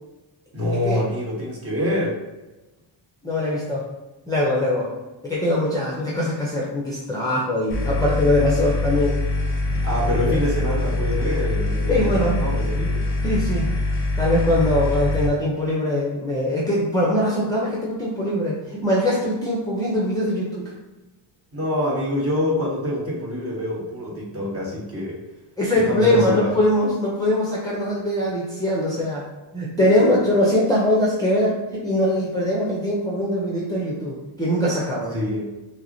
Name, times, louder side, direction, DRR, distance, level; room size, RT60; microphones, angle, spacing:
voice 1, 0.5-2.2 9.8-13.0 21.5-25.2 25.9-26.5 35.1-35.5, left 1 dB, 30° right, -4 dB, 1.1 m, -26 dB
voice 2, 3.2-3.8 4.3-4.9 5.2-9.2 9.6-9.8 10.1-10.4 11.9-12.4 13.2-13.7 14.2-20.6 25.6-29.2 29.5-35.2, left 1 dB, 10° left, -6 dB, 0.6 m, -22 dB
sound 1, 7.7-15.3, left 2 dB, 25° left, 1.0 m, -24 dB
5.4 x 2.1 x 2.7 m, 1.1 s
cardioid pair, 135°, 47 cm